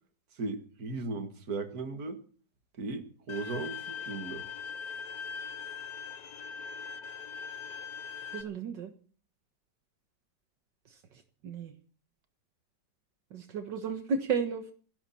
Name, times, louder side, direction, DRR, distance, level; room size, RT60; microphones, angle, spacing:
voice 1, 0.4-2.2 2.8-4.4, right 3 dB, 55° right, 8 dB, 2.4 m, -37 dB
Bowed string instrument, 3.3-8.4, left 7 dB, 55° left, 1.5 m, -41 dB
voice 2, 8.3-8.9 10.9-11.8 13.3-14.7, right 5 dB, 75° right, 7 dB, 2.1 m, -34 dB
27.5 x 12.0 x 4.4 m, 0.41 s
omnidirectional pair, 2.0 m